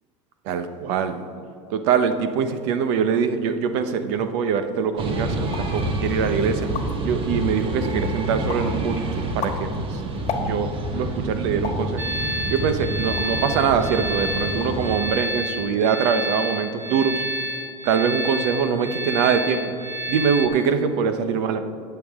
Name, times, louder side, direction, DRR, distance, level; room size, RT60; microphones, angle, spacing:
voice 1, 0.4-1.2 1.7-6.6 7.0-10.0 10.4-17.2 17.8-19.6 20.1-21.6, right 6 dB, 65° right, 9 dB, 0.9 m, -23 dB
sound 1, 5.0-15.0, right 1 dB, 35° right, 1.4 m, -28 dB
sound 2, 5.5-5.8 6.3-6.4 6.6-7.1 7.6-8.1 8.5-8.8 9.2-10.9 11.6-11.9 12.5-13.5 13.9-14.1 14.4-14.9 15.1-15.6, left 5 dB, 45° left, 1.5 m, -33 dB
sound 3, 12.0-20.5, right 1 dB, 15° right, 1.2 m, -29 dB
19.0 x 7.0 x 3.7 m, 2.6 s
supercardioid pair, 120°, 16 cm